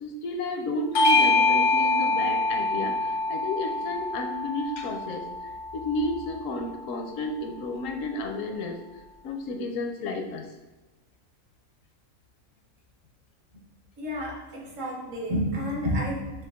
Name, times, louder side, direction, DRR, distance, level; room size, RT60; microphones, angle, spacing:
voice 1, 0.0-5.3 5.7-8.8 9.2-10.5, left 2 dB, 75° left, 5 dB, 1.0 m, -32 dB
Bell / Doorbell, 0.9-5.8, left 2 dB, 55° left, 0.6 m, -24 dB
voice 2, 14.0-16.4, equal, 70° right, -1 dB, 1.4 m, -30 dB
5.9 x 2.4 x 3.5 m, 1.2 s
omnidirectional pair, 1.4 m